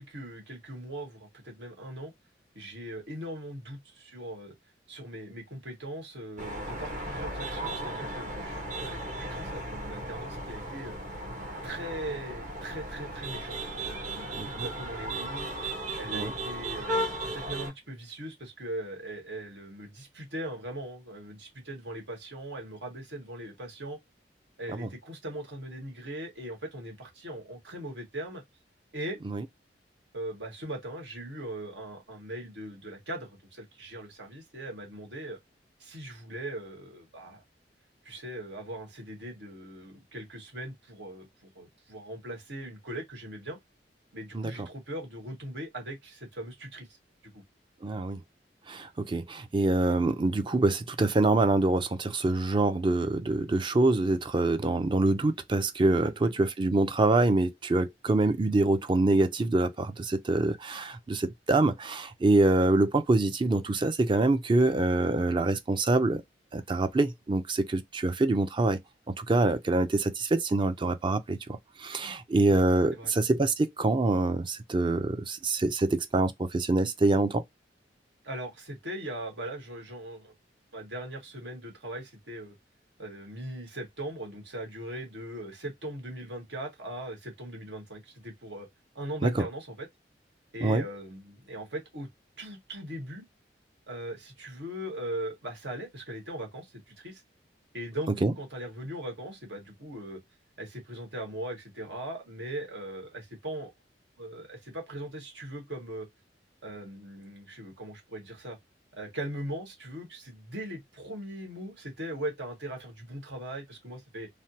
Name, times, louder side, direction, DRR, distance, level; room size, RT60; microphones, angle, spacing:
voice 1, 0.0-2.1 2.5-4.5 4.9-11.0 11.6-15.7 16.0-24.0 24.6-28.4 28.9-29.2 30.1-35.4 35.8-37.4 38.0-43.6 44.1-46.9 47.2-47.4 56.0-56.3 72.5-72.6 72.9-73.1 78.2-80.3 80.7-82.5 83.0-88.7 88.9-89.9 90.5-92.1 92.4-93.2 93.9-97.2 97.7-100.2 100.6-103.7 104.2-106.1 106.6-108.6 108.9-114.3, right 1 dB, 85° right, 1.5 m, -40 dB
sound 1, 6.4-17.7, right 1 dB, 45° right, 1.0 m, -36 dB
voice 2, 14.4-14.7 16.1-16.3 24.7-24.9 29.2-29.4 44.3-44.7 47.8-48.2 48.7-66.2 66.5-68.8 69.2-77.4 89.2-89.3 90.6-90.8 98.2-98.3, right 2 dB, 30° right, 0.4 m, -25 dB
3.3 x 2.2 x 2.7 m
head